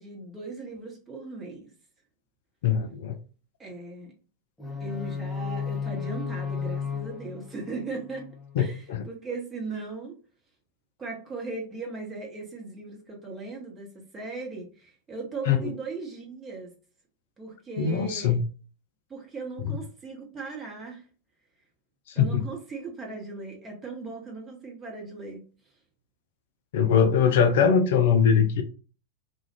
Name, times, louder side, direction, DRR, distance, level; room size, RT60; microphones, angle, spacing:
voice 1, 0.0-1.7 3.6-4.1 4.8-8.3 8.6-10.2 11.0-16.7 17.4-18.4 19.1-21.0 22.1-25.5 27.4-27.8, right 3 dB, 20° right, 0.9 m, -38 dB
voice 2, 2.6-3.2 8.6-8.7 8.9-9.0 15.5-15.7 17.8-18.4 22.1-22.4 26.7-28.6, left 7 dB, 55° left, 0.3 m, -21 dB
sound 1, 4.6-8.6, left 5 dB, 5° left, 0.6 m, -34 dB
2.3 x 2.2 x 2.9 m
figure-of-eight pair, 90°, 0 cm